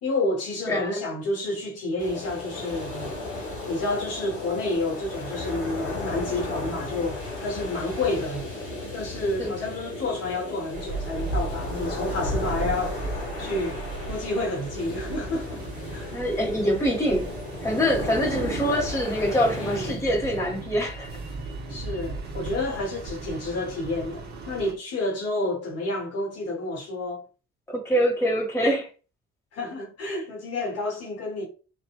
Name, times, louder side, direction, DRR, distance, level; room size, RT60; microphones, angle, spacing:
voice 1, 0.0-3.1 3.6-8.4 8.9-16.2 19.6-20.0 21.7-27.2 29.5-31.4, left 2 dB, 50° left, 0.9 m, -30 dB
voice 2, 0.7-1.0 9.4-9.5 16.1-17.3 17.6-21.1 27.7-28.9, equal, 10° left, 1.0 m, -24 dB
sound 1, 2.0-19.9, left 2 dB, 80° left, 0.9 m, -35 dB
sound 2, 10.7-24.7, right 3 dB, 30° right, 0.9 m, -35 dB
2.7 x 2.0 x 2.3 m
figure-of-eight pair, 45°, 32 cm